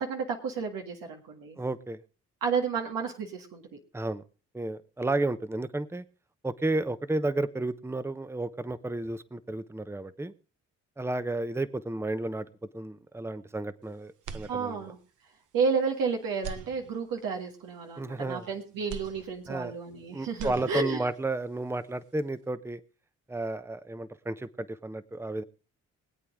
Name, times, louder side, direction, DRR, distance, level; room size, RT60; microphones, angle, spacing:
voice 1, 0.0-1.6 2.4-3.6 14.5-15.0 15.5-21.0, right 5 dB, 80° right, 2 dB, 1.9 m, -31 dB
voice 2, 1.6-2.0 3.9-4.2 4.5-6.0 6.4-10.3 11.0-12.5 12.7-14.8 18.0-18.5 19.5-19.7 20.1-22.8 23.3-25.4, right 2 dB, 5° right, 13 dB, 0.9 m, -32 dB
sound 1, 14.2-15.1 15.6-15.7 16.3-17.4 18.9-20.0 20.2-21.2, right 5 dB, 60° right, 1.2 m, -43 dB
23.5 x 8.4 x 3.6 m, 0.36 s
supercardioid pair, 60°, 34 cm